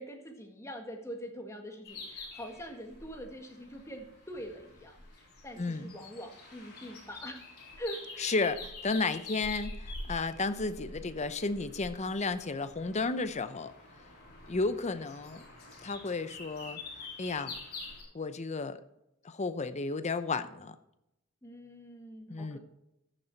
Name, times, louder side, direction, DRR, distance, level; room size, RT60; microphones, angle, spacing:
voice 1, 0.0-7.4 7.8-8.4 21.4-22.6, equal, 15° left, 3 dB, 1.6 m, -44 dB
sound 1, 1.8-18.0, left 2 dB, 45° left, 3.7 m, -46 dB
voice 2, 5.6-5.9 8.2-13.7 14.5-15.4 15.8-17.6 18.1-18.8 19.2-20.8 22.3-22.6, left 3 dB, 30° left, 11 dB, 0.7 m, -33 dB
14.5 x 6.7 x 4.5 m, 0.88 s
head